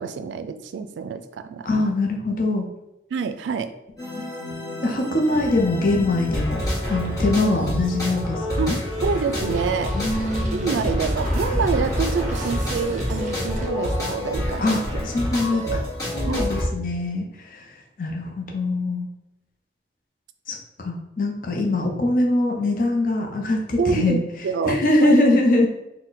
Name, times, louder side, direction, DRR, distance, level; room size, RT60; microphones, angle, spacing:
voice 1, 0.0-1.7 3.1-3.7 8.6-9.9 10.5-15.1 15.5-15.9 16.3-16.5 23.8-25.7, right 5 dB, 90° right, 10 dB, 0.3 m, -27 dB
voice 2, 1.6-2.6 4.8-6.6 6.9-8.8 9.9-10.8 14.6-15.8 16.1-17.3 17.5-17.7 18.0-19.1 20.5-24.2 24.7-25.7, left 2 dB, 50° left, 1 dB, 0.6 m, -22 dB
sound 1, 4.0-16.6, left 1 dB, 20° left, 1.4 m, -28 dB
sound 2, 5.3-13.7, right 1 dB, 40° right, 0.6 m, -32 dB
4.1 x 2.2 x 3.9 m, 0.92 s
head